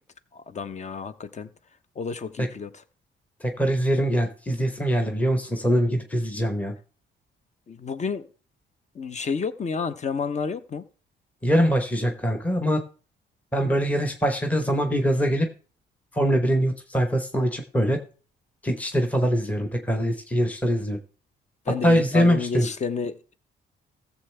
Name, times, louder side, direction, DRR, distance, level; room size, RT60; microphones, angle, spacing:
voice 1, 0.3-1.5 2.0-2.7 7.7-8.3 8.9-10.8 21.7-23.3, left 5 dB, 35° left, 0.8 m, -30 dB
voice 2, 3.4-6.7 11.4-12.8 13.5-15.5 16.1-18.0 18.6-21.0 21.8-22.7, equal, 5° left, 1.1 m, -23 dB
14.5 x 7.2 x 3.3 m
cardioid pair, 90°, 20 cm